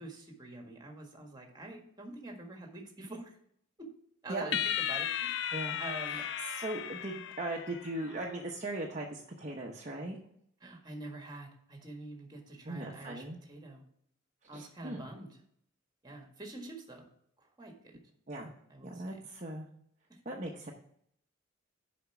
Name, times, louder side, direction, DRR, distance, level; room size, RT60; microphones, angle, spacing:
voice 1, 0.0-3.4 3.8-3.9 4.2-6.3 10.6-13.8 14.5-15.4 16.0-17.1 17.4-18.0 18.7-19.2 20.1-20.2, right 2 dB, 20° right, 2 dB, 1.6 m, -46 dB
sound 1, 4.5-8.1, left 10 dB, 60° left, 0.4 m, -35 dB
voice 2, 6.1-10.2 12.6-13.4 14.5-15.1 18.3-18.5 18.8-19.7 20.2-20.7, right 1 dB, 35° right, -1 dB, 0.9 m, -39 dB
7.1 x 5.2 x 5.9 m, 0.67 s
head